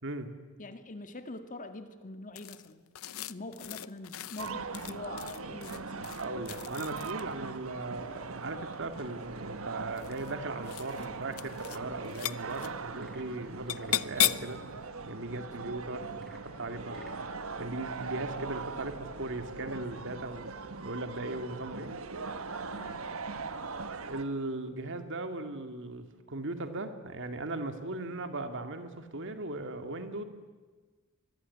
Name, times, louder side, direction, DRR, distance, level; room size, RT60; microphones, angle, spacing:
voice 1, 0.0-0.3 6.2-14.6 15.1-17.1 17.6-20.5 20.8-21.9 24.1-30.2, right 2 dB, 60° right, 7 dB, 2.4 m, -38 dB
voice 2, 0.6-2.8 3.3-6.4 15.4-15.8 16.9-17.2 22.7-23.3, left 2 dB, 40° left, 8 dB, 1.8 m, -45 dB
sound 1, 2.4-7.4 8.6-9.2 9.9-10.4 10.6-11.1 11.3-11.8 12.0-12.7 13.7-14.6, left 13 dB, 80° left, 0.7 m, -35 dB
sound 2, 4.4-24.2, right 4 dB, 75° right, 1.4 m, -41 dB
Frog / Percussion / Wood, 12.9-14.1 16.1-17.3, equal, ahead, 3.4 m, -59 dB
25.0 x 21.0 x 9.8 m, 1.3 s
head